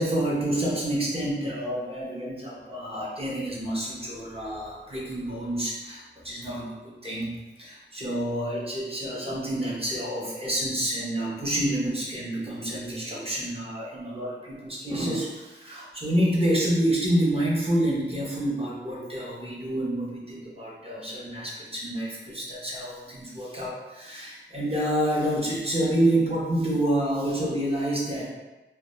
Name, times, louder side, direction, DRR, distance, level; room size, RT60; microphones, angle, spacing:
voice 1, 0.0-28.3, right 1 dB, 30° right, -5 dB, 0.6 m, -28 dB
2.1 x 2.1 x 2.9 m, 1.1 s
wide cardioid pair, 70°, 19 cm